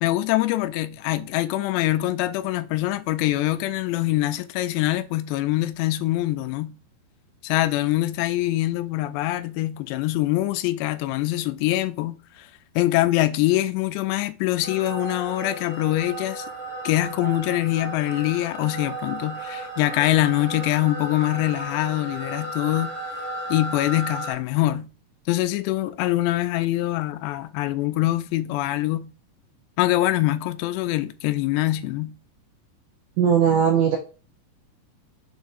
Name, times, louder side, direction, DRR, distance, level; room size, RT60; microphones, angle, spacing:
voice 1, 0.0-6.8 7.4-12.5 12.8-16.5 16.8-22.9 23.5-24.9 25.3-29.1 29.8-32.2, left 16 dB, 85° left, 2.7 m, -24 dB
sound 1, 14.6-24.3, right 1 dB, 40° right, 1.0 m, -34 dB
voice 2, 33.2-34.0, right 8 dB, 75° right, 1.9 m, -18 dB
6.8 x 3.4 x 4.0 m
omnidirectional pair, 4.9 m